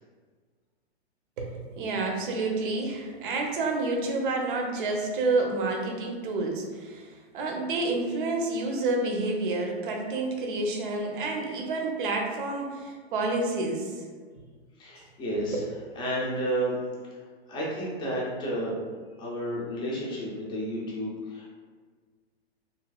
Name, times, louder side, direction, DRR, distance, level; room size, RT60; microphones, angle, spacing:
voice 1, 1.4-7.1 7.3-14.0 15.5-15.6, right 2 dB, 55° right, 1 dB, 0.7 m, -29 dB
voice 2, 14.8-15.6 15.9-16.8 17.1-18.8 19.2-21.5, right 1 dB, 15° left, -5 dB, 0.6 m, -31 dB
3.0 x 2.6 x 2.3 m, 1.5 s
hypercardioid pair, 125°, 32 cm